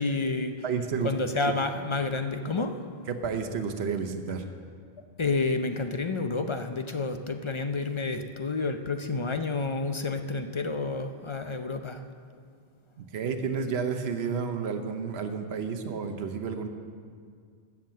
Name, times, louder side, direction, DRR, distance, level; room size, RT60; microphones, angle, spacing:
voice 1, 0.0-0.5 1.0-2.7 5.2-12.0, left 3 dB, 35° left, 7 dB, 0.5 m, -29 dB
voice 2, 0.6-1.1 3.1-4.4 13.0-16.7, right 6 dB, 75° right, 6 dB, 1.1 m, -31 dB
13.0 x 7.3 x 7.4 m, 2.1 s
omnidirectional pair, 1.1 m